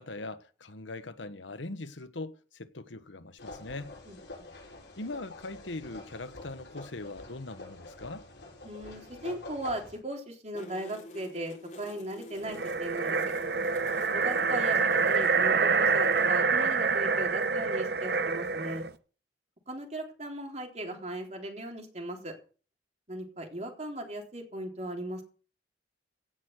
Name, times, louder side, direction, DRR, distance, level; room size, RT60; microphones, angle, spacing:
voice 1, 0.0-3.9 5.0-8.2, left 2 dB, 90° left, 1.2 m, -41 dB
sound 1, 3.4-10.0, left 2 dB, 70° left, 7.5 m, -46 dB
voice 2, 4.1-4.5 8.6-13.2 14.1-18.9 19.7-22.3 23.1-25.2, right 1 dB, 35° right, 3.7 m, -38 dB
sound 2, 10.5-16.3, left 1 dB, 40° left, 3.7 m, -47 dB
sound 3, 12.5-18.9, right 5 dB, 60° right, 0.9 m, -26 dB
17.0 x 6.4 x 8.2 m
head